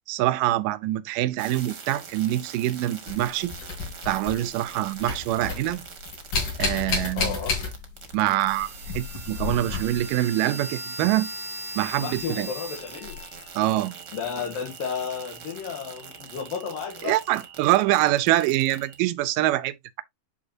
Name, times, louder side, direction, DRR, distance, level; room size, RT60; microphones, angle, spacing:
voice 1, 0.1-3.5 4.0-5.8 6.6-7.4 8.1-8.7 8.9-11.3 11.8-12.5 13.6-14.0 17.0-20.0, right 15 dB, 80° right, 2.2 m, -25 dB
sound 1, 1.4-19.0, right 4 dB, 45° right, 1.3 m, -41 dB
sound 2, 3.1-4.7 5.0-8.2 8.4-10.2 12.1-12.2 13.0-13.2, left 5 dB, 65° left, 5.0 m, -31 dB
voice 2, 7.1-7.6 12.0-13.2 14.1-17.2, left 6 dB, 80° left, 3.3 m, -32 dB
11.0 x 3.9 x 2.8 m
omnidirectional pair, 4.0 m